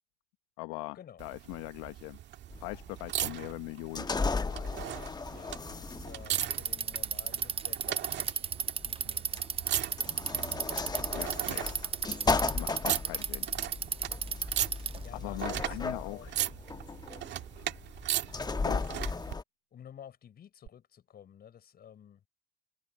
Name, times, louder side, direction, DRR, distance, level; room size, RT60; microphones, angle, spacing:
voice 1, 0.6-2.2 2.6-4.2 4.5-4.7 11.2-11.6 12.5-13.5 15.1-16.3 18.6-18.8, left 25 dB, 75° left, 1.0 m, -41 dB
sound 1, 1.2-19.4 20.7-20.8, right 12 dB, 55° right, 2.0 m, -38 dB
sound 2, 2.5-19.4, left 4 dB, 20° left, 1.1 m, -36 dB
voice 2, 5.1-9.6 14.8-16.3 19.7-22.2, left 9 dB, 45° left, 5.0 m, -52 dB
Bicycle, 6.2-15.1, right 7 dB, 25° right, 0.5 m, -33 dB
hypercardioid pair, 70°, 21 cm